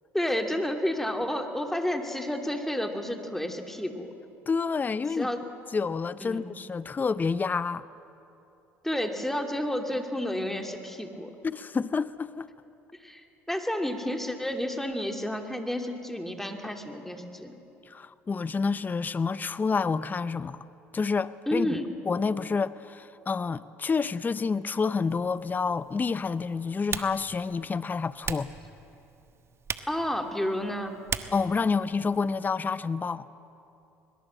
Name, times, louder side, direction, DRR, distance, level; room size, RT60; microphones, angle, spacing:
voice 1, 0.1-4.1 5.1-5.4 6.2-6.4 8.8-11.3 13.0-17.5 21.5-21.9 29.9-31.0, left 1 dB, 5° left, 2.7 m, -31 dB
voice 2, 4.5-5.3 5.7-7.8 11.4-12.5 17.9-20.6 20.9-21.8 22.1-28.5 31.3-33.3, left 5 dB, 25° left, 0.6 m, -28 dB
Typing, 25.1-32.6, right 6 dB, 40° right, 1.4 m, -40 dB
22.0 x 22.0 x 7.7 m
hypercardioid pair, 70°, 7 cm